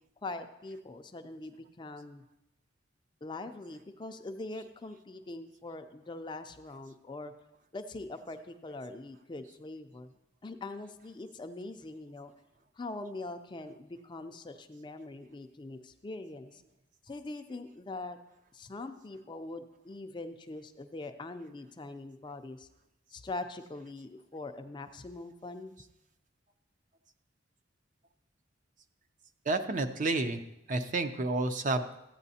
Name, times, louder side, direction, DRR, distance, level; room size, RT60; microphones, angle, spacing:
voice 1, 0.2-2.2 3.2-7.3 7.7-10.1 10.4-12.3 12.8-16.6 17.0-18.2 18.5-22.7 23.1-25.7, left 2 dB, 25° left, 8 dB, 0.4 m, -42 dB
voice 2, 29.5-30.4 30.7-31.8, right 2 dB, 40° right, 8 dB, 0.5 m, -30 dB
14.5 x 8.9 x 2.8 m, 0.88 s
head